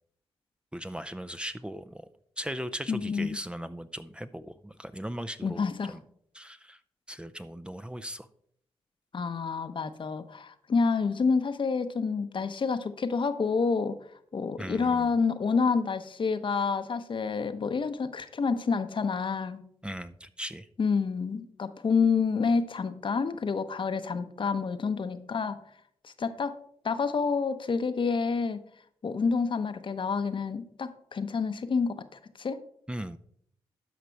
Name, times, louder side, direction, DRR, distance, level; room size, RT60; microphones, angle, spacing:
voice 1, 0.7-2.1 2.4-5.6 5.9-6.0 6.3-6.8 7.1-8.3 14.6-15.1 19.8-20.7 32.9-33.2, equal, 10° right, 11 dB, 0.5 m, -38 dB
voice 2, 2.9-3.4 5.4-5.9 9.1-14.0 14.3-19.6 20.8-25.6 26.0-26.6 26.8-28.6 29.0-32.6, left 5 dB, 50° left, 10 dB, 0.8 m, -28 dB
12.5 x 5.1 x 4.5 m, 0.67 s
supercardioid pair, 50°, 11 cm